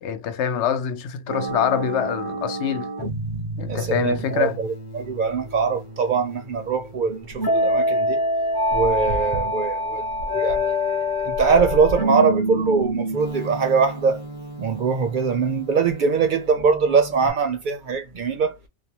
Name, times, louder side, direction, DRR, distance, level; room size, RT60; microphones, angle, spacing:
voice 1, 0.0-2.9 3.6-4.6, left 8 dB, 80° left, 0.9 m, -25 dB
sound 1, 1.3-17.3, equal, 25° left, 0.7 m, -27 dB
voice 2, 3.7-8.2 8.7-14.2 14.6-18.6, right 5 dB, 60° right, 0.6 m, -22 dB
2.6 x 2.1 x 2.7 m
omnidirectional pair, 1.1 m